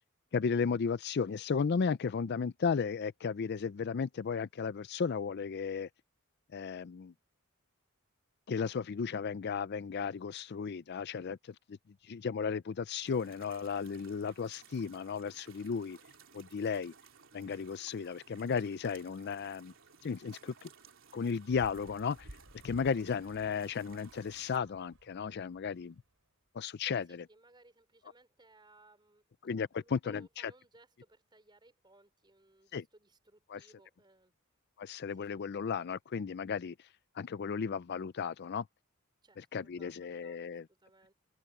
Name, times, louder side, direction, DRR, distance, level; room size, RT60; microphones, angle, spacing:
voice 1, 0.3-5.9 6.5-7.1 8.5-11.8 12.0-16.0 16.3-16.9 17.3-19.7 20.0-20.7 21.1-22.3 22.6-26.0 26.5-27.2 29.4-30.5 32.7-32.8 33.5-33.7 34.8-36.7 37.2-38.7 39.4-40.7, left 5 dB, 50° left, 0.4 m, -34 dB
sound 1, 13.0-24.6, right 6 dB, 65° right, 3.6 m, -59 dB
sound 2, 21.4-26.1, right 1 dB, 80° right, 4.7 m, -56 dB
voice 2, 26.9-29.2 29.6-34.3 34.9-35.3 39.2-40.4 40.8-41.1, right 2 dB, 20° right, 4.0 m, -62 dB
open air
head